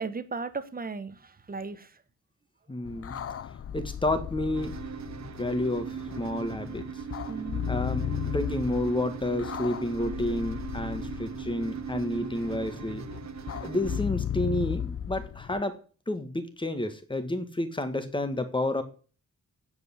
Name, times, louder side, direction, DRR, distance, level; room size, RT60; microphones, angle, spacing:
voice 1, 0.0-2.0 2.9-3.0 7.3-7.6 12.0-12.3 13.6-13.8, right 4 dB, 30° right, 12 dB, 1.2 m, -37 dB
voice 2, 2.7-3.2 3.7-4.7 5.4-6.9 7.7-13.0 13.6-15.8 16.1-18.8, left 1 dB, 15° left, 9 dB, 1.7 m, -30 dB
sound 1, 2.8-15.6, left 9 dB, 50° left, 0.6 m, -36 dB
sound 2, 4.5-14.0, right 8 dB, 70° right, 0.9 m, -39 dB
9.6 x 8.0 x 9.5 m, 0.38 s
wide cardioid pair, 170°, 29 cm